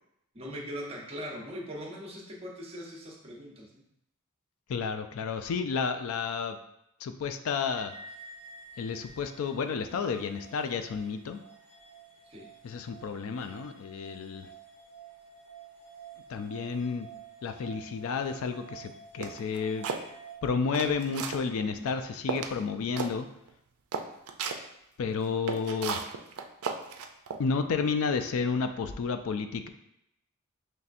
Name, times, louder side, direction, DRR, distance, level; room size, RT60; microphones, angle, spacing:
voice 1, 0.3-3.8 12.3-12.5, equal, 25° right, -1 dB, 0.9 m, -40 dB
voice 2, 4.7-6.6 7.0-7.9 8.8-11.4 12.6-14.5 16.3-17.1 17.4-19.9 20.4-23.3 25.0-26.0 27.4-29.7, left 5 dB, 65° left, 8 dB, 0.3 m, -31 dB
sound 1, 7.7-20.4, right 5 dB, 25° left, 1.1 m, -50 dB
sound 2, 19.2-20.0 20.5-21.4 21.9-22.0 22.3-22.6 23.0-23.1 23.5-23.6 23.9-24.6 25.2-27.4, right 5 dB, 70° right, 0.4 m, -34 dB
5.5 x 3.2 x 2.5 m, 0.80 s
head